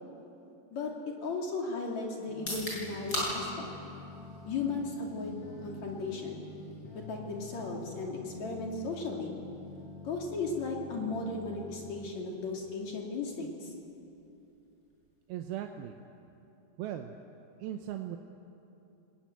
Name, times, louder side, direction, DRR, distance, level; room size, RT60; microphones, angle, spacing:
voice 1, 1.2-3.7 4.5-6.5 6.9-9.4 10.0-13.7, left 3 dB, 50° left, -1 dB, 3.6 m, -36 dB
sound 1, 2.3-12.1, left 3 dB, 65° left, 5.6 m, -47 dB
sound 2, 2.3-16.2, left 1 dB, 25° left, 6.7 m, -45 dB
voice 2, 15.3-16.0 16.8-17.1 17.6-18.2, right 11 dB, 85° right, 5 dB, 2.7 m, -38 dB
23.5 x 19.0 x 9.5 m, 2.9 s
omnidirectional pair, 4.4 m